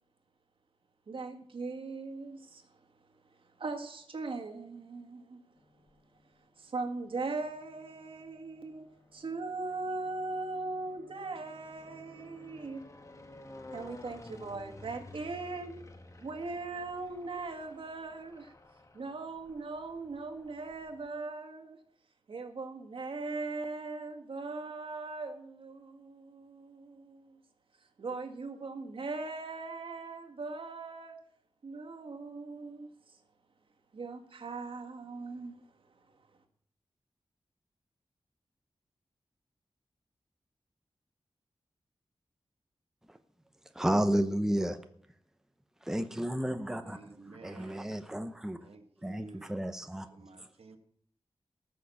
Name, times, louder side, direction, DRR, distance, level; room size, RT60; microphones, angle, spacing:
voice 1, 1.1-2.6 3.6-5.4 6.6-8.9 9.1-12.8 13.7-15.7 16.2-18.5 18.9-21.8 22.3-27.4 28.0-31.1 31.6-32.9 33.9-35.6, right 3 dB, 65° right, 1.9 m, -39 dB
sound 1, 5.6-6.3 7.1-21.1, left 2 dB, 35° left, 1.3 m, -54 dB
voice 2, 43.7-44.8 45.8-48.7 49.0-50.5, right 1 dB, 5° right, 0.8 m, -32 dB
voice 3, 46.8-47.9 48.6-49.6 50.1-50.8, right 3 dB, 85° right, 1.6 m, -52 dB
18.0 x 6.6 x 7.1 m
wide cardioid pair, 130°, 10 cm